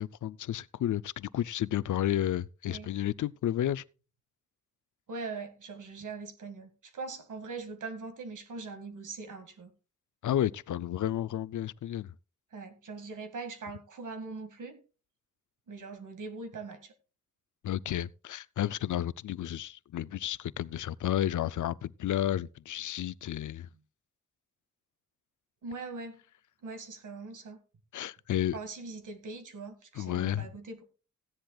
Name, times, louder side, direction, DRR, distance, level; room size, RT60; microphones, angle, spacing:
voice 1, 0.0-3.8 10.2-12.1 17.6-23.7 27.9-28.6 30.0-30.5, left 12 dB, 75° left, 0.5 m, -32 dB
voice 2, 5.1-9.7 12.5-14.8 15.7-16.9 25.6-26.2 26.6-27.6 28.5-30.8, right 4 dB, 80° right, 1.9 m, -41 dB
16.0 x 10.5 x 2.3 m
wide cardioid pair, 130°, 31 cm